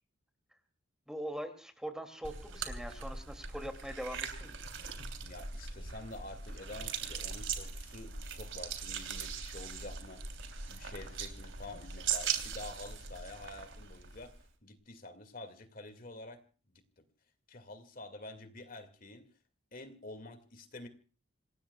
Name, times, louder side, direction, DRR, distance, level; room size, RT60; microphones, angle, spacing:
voice 1, 1.1-4.6, equal, 5° right, 7 dB, 2.5 m, -42 dB
sound 1, 2.2-14.4, right 6 dB, 65° right, 3.2 m, -40 dB
voice 2, 5.2-10.2 10.7-14.3 14.6-16.4 17.0-17.1 17.5-19.3 19.7-20.9, left 2 dB, 45° left, 8 dB, 2.2 m, -48 dB
28.0 x 18.5 x 2.3 m, 0.39 s
head